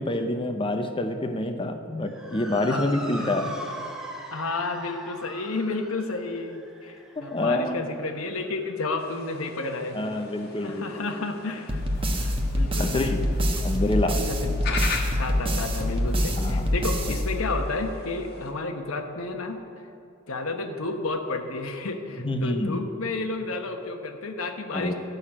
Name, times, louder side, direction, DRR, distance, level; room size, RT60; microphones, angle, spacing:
voice 1, 0.0-3.5 7.2-7.9 9.9-11.2 12.8-13.3 13.6-14.2 16.4-16.7 22.2-22.8 24.7-24.9, left 1 dB, 25° left, 6 dB, 0.7 m, -27 dB
Motor vehicle (road) / Siren, 2.1-10.6, right 1 dB, 5° right, 1.0 m, -41 dB
voice 2, 4.3-10.0 10.6-11.8 12.2-13.2 14.3-14.9 15.1-19.6 20.3-24.9, left 3 dB, 90° left, 5 dB, 1.1 m, -31 dB
sound 1, 9.0-18.5, left 4 dB, 50° left, 1.5 m, -40 dB
sound 2, 11.7-17.8, equal, 25° right, 1.1 m, -26 dB
12.0 x 6.5 x 8.7 m, 2.6 s
head